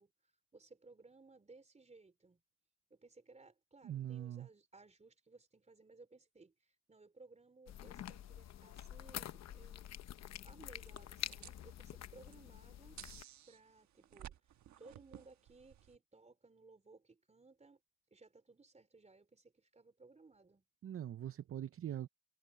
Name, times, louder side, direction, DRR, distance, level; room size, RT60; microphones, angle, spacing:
voice 1, 0.0-2.4 2.9-9.9 10.4-13.0 13.5-17.8 18.1-20.6, right 3 dB, 20° right, 3.8 m, -61 dB
voice 2, 3.8-4.5 20.8-22.1, right 11 dB, 45° right, 0.7 m, -42 dB
sound 1, 7.7-13.2, left 11 dB, 60° left, 0.8 m, -48 dB
sound 2, 10.9-16.0, right 11 dB, 70° right, 1.3 m, -56 dB
cardioid pair, 90°, 30 cm